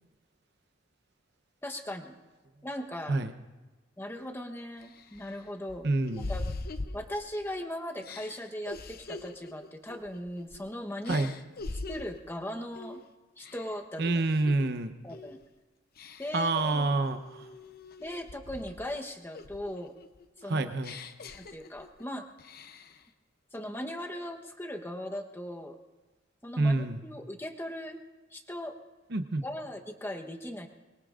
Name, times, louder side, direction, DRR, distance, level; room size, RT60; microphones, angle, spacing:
voice 1, 1.6-2.2 2.6-3.2 4.0-5.9 6.3-6.4 6.9-11.3 11.9-13.0 13.4-14.3 15.0-15.4 16.2-16.9 18.0-20.0 20.4-20.7 21.3-22.3 23.5-25.8 26.4-28.0 28.3-28.8 29.4-30.7, left 1 dB, 10° left, 3 dB, 1.0 m, -38 dB
sound 1, 4.2-4.3 4.8-7.5 8.0-10.7 11.0-12.3 12.7-13.0 13.4-14.7 15.1-15.4 16.0-16.5 17.1-19.0 19.3-22.0 22.4-23.0, left 2 dB, 50° left, 0.7 m, -42 dB
voice 2, 5.8-6.2 11.1-11.3 14.0-14.9 16.3-17.4 20.5-20.9 26.6-27.0 29.1-29.4, right 2 dB, 60° right, 9 dB, 0.9 m, -27 dB
24.5 x 21.5 x 2.5 m, 1.2 s
head